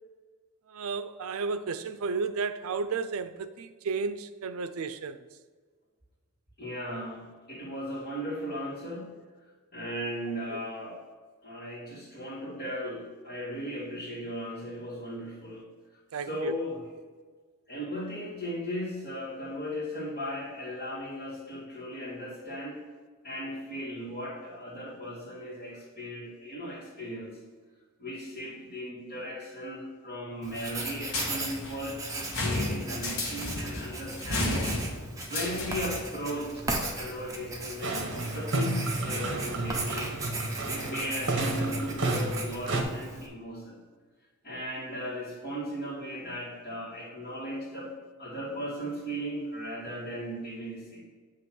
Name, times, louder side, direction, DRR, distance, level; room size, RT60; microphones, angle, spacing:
voice 1, 0.7-5.3 10.5-10.6 16.1-16.5, right 4 dB, 75° right, 0.4 m, -33 dB
voice 2, 6.6-9.2 9.7-11.0 11.4-15.7 16.2-16.8 17.7-22.9 23.2-27.4 28.0-34.7 35.3-40.2 40.7-43.8 44.4-51.0, equal, 40° left, 1.8 m, -37 dB
Writing, 30.4-43.3, right 2 dB, 15° right, 0.7 m, -37 dB
sound 1, 31.1-36.1, left 2 dB, 75° left, 1.3 m, -33 dB
sound 2, 37.8-42.8, right 2 dB, 55° right, 0.9 m, -31 dB
7.7 x 3.0 x 6.0 m
head